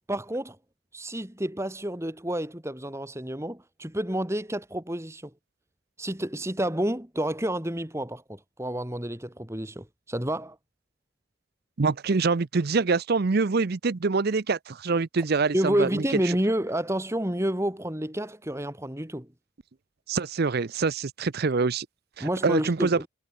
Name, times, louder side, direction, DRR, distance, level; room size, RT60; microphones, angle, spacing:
voice 1, 0.1-0.6 0.9-5.3 6.0-10.6 15.5-19.3 22.2-23.1, right 1 dB, 15° right, 2.1 m, -29 dB
voice 2, 11.8-15.9 16.3-16.4 20.1-21.9 22.2-23.0, right 4 dB, 50° right, 0.6 m, -25 dB
head